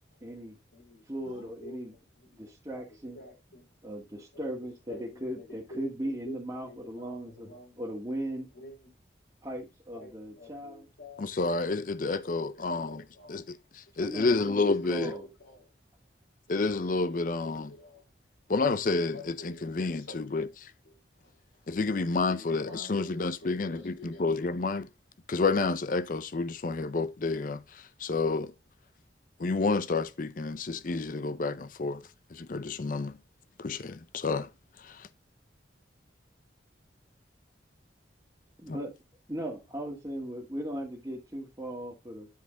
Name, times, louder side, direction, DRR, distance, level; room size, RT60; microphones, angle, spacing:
voice 1, 0.2-0.6 1.1-1.9 2.4-3.2 3.8-8.5 9.4-10.9 14.0-15.2 38.6-38.9 39.3-42.3, right 1 dB, 20° right, 1.7 m, -38 dB
voice 2, 0.7-2.4 2.9-3.7 4.3-7.8 8.5-8.9 9.9-11.3 11.8-13.4 14.6-15.7 17.0-18.0 19.0-19.7 19.9-20.5 20.9-21.0 21.2-21.3 22.3-24.5, left 1 dB, 85° left, 3.9 m, -50 dB
voice 3, 11.2-15.1 16.5-17.7 18.5-20.7 21.7-24.9 25.3-28.5 29.4-33.1 33.6-34.5 34.8-35.1 38.7-38.8, left 3 dB, 45° left, 0.5 m, -30 dB
10.5 x 4.9 x 3.7 m
head